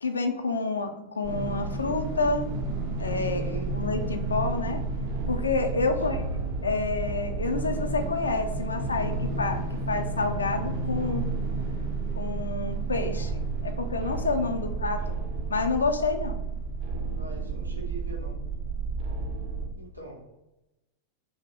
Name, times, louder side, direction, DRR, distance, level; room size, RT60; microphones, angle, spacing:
voice 1, 0.0-2.5 3.0-3.4 3.7-4.8 5.3-6.2 6.6-11.3 12.2-15.2 15.5-16.4, left 3 dB, 75° left, 6 dB, 0.3 m, -29 dB
sound 1, 1.2-19.7, right 3 dB, 45° right, 0.4 m, -31 dB
voice 2, 3.2-3.7 5.7-6.2 14.3-14.5 17.2-18.4 19.8-20.2, right 2 dB, 90° right, -1 dB, 0.6 m, -42 dB
2.6 x 2.0 x 3.4 m, 0.97 s
figure-of-eight pair, 90°, 0 cm